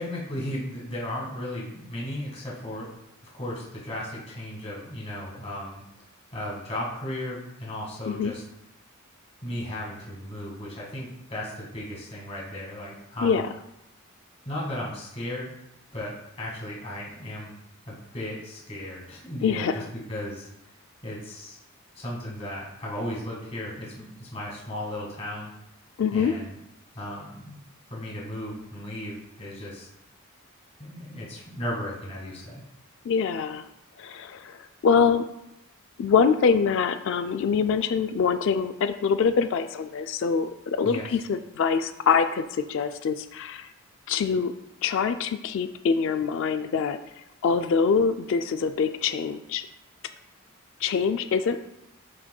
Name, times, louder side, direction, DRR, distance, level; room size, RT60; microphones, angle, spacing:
voice 1, 0.0-2.9 3.3-5.8 6.3-8.4 9.4-13.4 14.5-15.5 15.9-17.5 17.9-19.8 20.1-20.5 21.0-21.6 22.0-25.5 26.1-26.6 26.9-27.6 27.9-29.9 30.8-32.6 40.8-41.0, left 1 dB, 30° left, -4 dB, 1.9 m, -35 dB
voice 2, 19.4-19.8 26.0-26.3 33.1-33.6 34.0-35.2 36.0-43.7 44.1-44.5 44.8-47.0 47.4-49.6 50.8-51.6, left 6 dB, 60° left, 9 dB, 0.3 m, -24 dB
11.0 x 4.3 x 2.3 m, 0.86 s
head